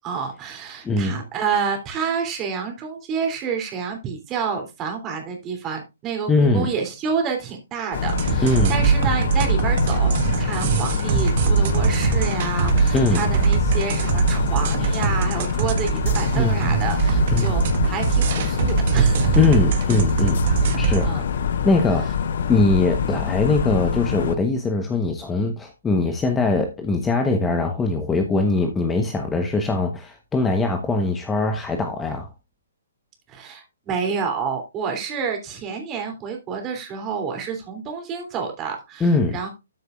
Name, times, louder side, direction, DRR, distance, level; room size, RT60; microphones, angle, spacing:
voice 1, 0.0-19.4 21.0-21.2 33.3-39.5, right 6 dB, 20° right, 3.1 m, -29 dB
voice 2, 0.8-1.2 6.3-6.7 8.4-8.8 12.9-13.3 16.3-16.6 17.3-17.5 19.4-20.4 20.8-21.1 21.6-22.1 22.5-32.3 39.0-39.4, left 3 dB, 10° left, 1.1 m, -21 dB
sound 1, 7.9-24.4, left 7 dB, 55° left, 0.9 m, -25 dB
sound 2, 8.1-21.1, right 6 dB, 45° right, 1.4 m, -22 dB
13.0 x 6.5 x 2.5 m
figure-of-eight pair, 130°, 0 cm